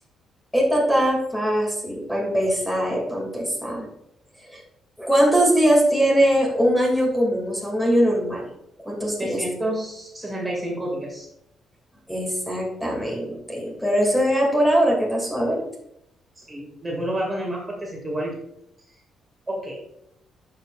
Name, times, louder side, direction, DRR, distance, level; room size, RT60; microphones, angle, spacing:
voice 1, 0.5-3.9 4.5-4.6 5.0-8.5 8.9-9.4 12.1-15.6, equal, 5° left, -1 dB, 2.5 m, -21 dB
voice 2, 9.2-11.3 16.4-18.4 18.9-19.0 19.5-19.8, right 1 dB, 20° right, -2 dB, 2.4 m, -29 dB
11.0 x 5.5 x 2.5 m, 0.76 s
cardioid pair, 90°, 0 cm